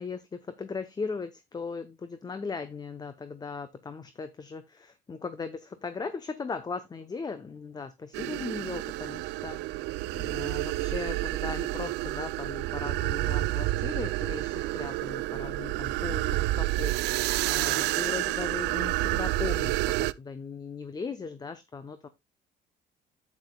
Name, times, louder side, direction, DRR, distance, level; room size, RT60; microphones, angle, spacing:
voice 1, 0.0-22.1, left 4 dB, 25° left, 11 dB, 0.7 m, -38 dB
sound 1, 8.1-20.1, right 18 dB, 85° right, 0.4 m, -29 dB
10.5 x 8.5 x 2.3 m, 0.19 s
cardioid pair, 110°, 17 cm